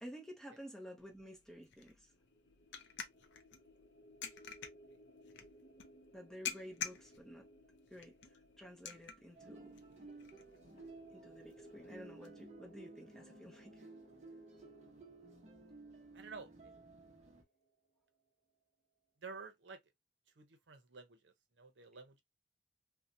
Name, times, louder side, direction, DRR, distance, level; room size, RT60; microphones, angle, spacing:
voice 1, 0.0-2.1 6.1-7.5 7.9-9.7 11.1-13.9, equal, 5° left, 0.6 m, -52 dB
sound 1, 1.0-12.3, left 7 dB, 80° left, 0.5 m, -50 dB
sound 2, 2.0-17.7, equal, 40° left, 0.8 m, -62 dB
sound 3, 9.3-17.4, right 3 dB, 40° right, 0.6 m, -56 dB
voice 2, 16.1-16.5 19.2-19.8 20.4-22.2, right 4 dB, 85° right, 0.7 m, -51 dB
2.7 x 2.1 x 2.4 m
head